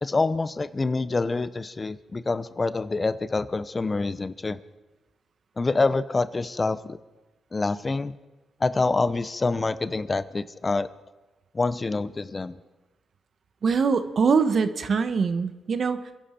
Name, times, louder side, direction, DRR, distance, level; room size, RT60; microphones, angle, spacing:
voice 1, 0.0-4.6 5.6-7.0 7.5-8.1 8.6-10.9 11.5-12.6, left 3 dB, 30° left, 14 dB, 0.7 m, -26 dB
voice 2, 13.6-16.1, right 5 dB, 55° right, 11 dB, 1.0 m, -23 dB
28.5 x 11.0 x 4.4 m, 1.2 s
cardioid pair, 65°, 0 cm